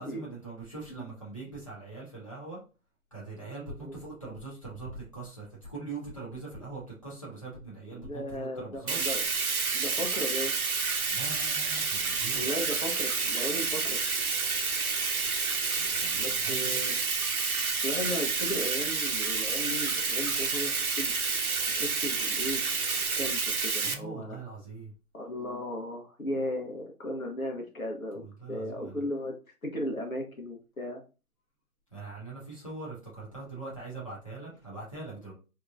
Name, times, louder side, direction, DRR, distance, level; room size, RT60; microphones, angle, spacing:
voice 1, 0.0-2.6 3.1-9.0 11.1-12.7 15.7-16.8 23.8-24.9 28.1-29.0 31.9-35.3, right 3 dB, 20° left, -7 dB, 1.0 m, -42 dB
voice 2, 7.9-9.2 9.7-10.5 12.3-14.0 16.2-17.0 17.8-21.1 21.7-22.8 23.2-24.4 25.1-28.2 28.5-29.3 29.6-31.0, left 1 dB, 65° left, 2 dB, 1.1 m, -36 dB
Bathtub (filling or washing), 8.9-23.9, right 4 dB, 70° right, 0.8 m, -29 dB
3.6 x 3.0 x 2.5 m, 0.32 s
figure-of-eight pair, 175°, 45 cm